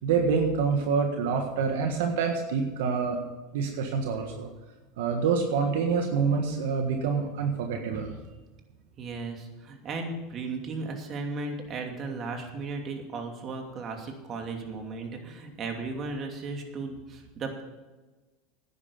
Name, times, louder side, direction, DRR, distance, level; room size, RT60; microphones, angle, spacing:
voice 1, 0.0-3.2 3.5-4.5 5.0-8.2, right 5 dB, 75° right, 4 dB, 1.5 m, -26 dB
voice 2, 9.0-17.6, right 3 dB, 40° right, 3 dB, 2.7 m, -35 dB
11.5 x 9.6 x 7.1 m, 1.2 s
supercardioid pair, 105°, 0 cm